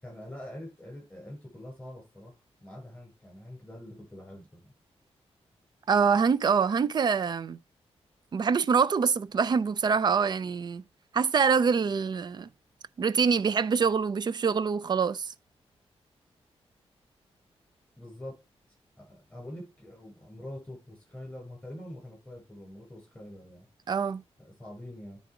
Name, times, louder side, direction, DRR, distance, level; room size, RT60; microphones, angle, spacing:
voice 1, 0.0-4.7 18.0-18.4 19.0-23.7 24.4-25.2, left 1 dB, 10° left, 5.8 m, -45 dB
voice 2, 5.9-7.6 8.3-10.8 11.1-12.5 13.0-15.3 23.9-24.2, right 6 dB, 40° right, 0.4 m, -25 dB
9.4 x 3.9 x 4.8 m
wide cardioid pair, 140°, 11 cm